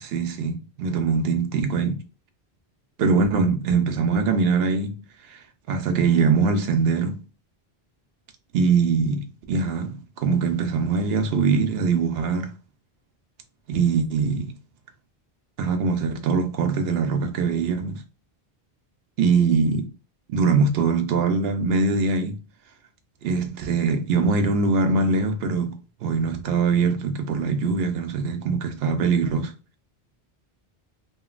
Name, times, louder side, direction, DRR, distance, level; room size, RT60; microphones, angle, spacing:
voice 1, 0.0-2.0 3.0-5.0 5.3-5.4 5.7-7.2 8.5-12.5 13.7-14.5 15.6-18.0 19.2-19.9 20.3-22.4 23.2-29.5, right 4 dB, 75° right, 0.8 m, -22 dB
2.9 x 2.5 x 2.4 m
omnidirectional pair, 1.0 m